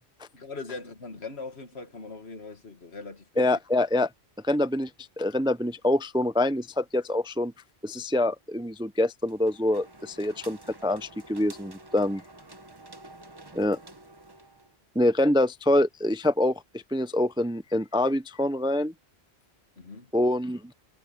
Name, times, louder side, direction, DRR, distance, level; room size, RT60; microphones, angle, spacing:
voice 1, 0.3-3.5 19.8-20.1, left 3 dB, 80° left, 2.1 m, -40 dB
voice 2, 3.4-4.1 4.4-4.9 5.2-7.5 7.8-12.2 13.5-13.8 15.0-18.9 20.1-20.6, left 1 dB, 5° right, 0.4 m, -25 dB
sound 1, 9.3-14.8, right 2 dB, 20° right, 1.2 m, -49 dB
omnidirectional pair, 1.1 m